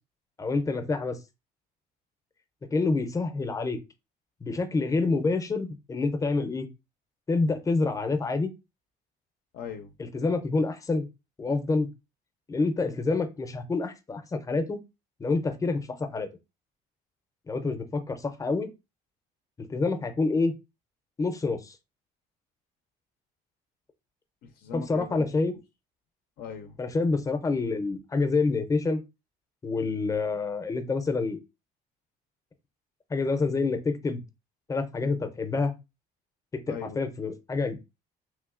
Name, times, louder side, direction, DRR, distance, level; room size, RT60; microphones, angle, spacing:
voice 1, 0.4-1.2 2.7-3.8 4.4-6.7 7.3-8.5 10.0-11.1 11.4-11.9 12.5-14.8 15.2-16.3 17.5-18.7 19.6-20.5 21.2-21.8 24.7-25.5 26.8-29.0 29.6-31.4 33.1-34.2 34.7-35.7 36.5-37.8, left 3 dB, 20° left, 0.5 m, -27 dB
voice 2, 9.5-9.9 24.4-25.6 26.4-26.8 36.7-37.0, left 7 dB, 70° left, 0.4 m, -40 dB
3.1 x 2.8 x 2.4 m
cardioid pair, 110°, 17 cm